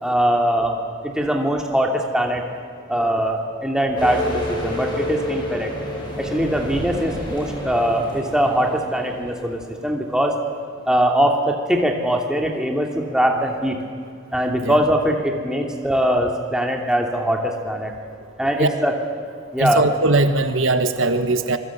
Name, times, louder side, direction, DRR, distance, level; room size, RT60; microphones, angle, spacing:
voice 1, 0.0-2.4 2.9-5.7 6.2-10.3 10.9-13.8 14.3-17.9 18.4-19.0 19.5-19.8, equal, 5° right, 1 dB, 2.7 m, -21 dB
sound 1, 4.0-9.5, equal, 20° left, 7.4 m, -29 dB
voice 2, 19.6-21.6, right 2 dB, 80° right, 9 dB, 1.4 m, -20 dB
26.5 x 21.5 x 8.6 m, 2.2 s
head